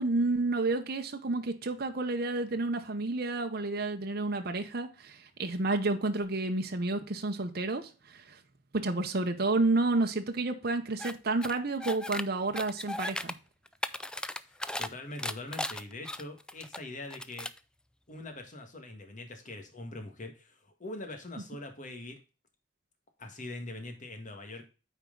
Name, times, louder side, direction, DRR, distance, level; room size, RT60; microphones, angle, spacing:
voice 1, 0.0-8.4 8.7-13.3, right 2 dB, 55° right, 0.9 m, -30 dB
sound 1, 11.0-11.1 11.4-12.2 12.5-13.3 13.7-14.9 15.2-16.8 17.1-17.6, left 1 dB, 5° left, 0.4 m, -36 dB
voice 2, 14.4-17.5 18.1-22.2 23.2-24.6, left 2 dB, 45° left, 1.8 m, -43 dB
8.9 x 4.6 x 3.8 m
head